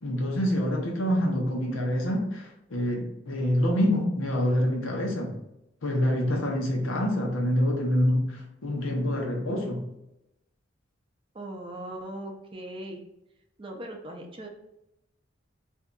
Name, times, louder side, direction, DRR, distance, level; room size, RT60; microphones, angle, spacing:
voice 1, 0.0-5.3 5.8-9.8, equal, 90° left, 0 dB, 0.8 m, -26 dB
voice 2, 11.3-13.0 13.6-14.5, right 1 dB, 25° right, 2 dB, 0.5 m, -39 dB
2.7 x 2.3 x 3.7 m, 0.87 s
head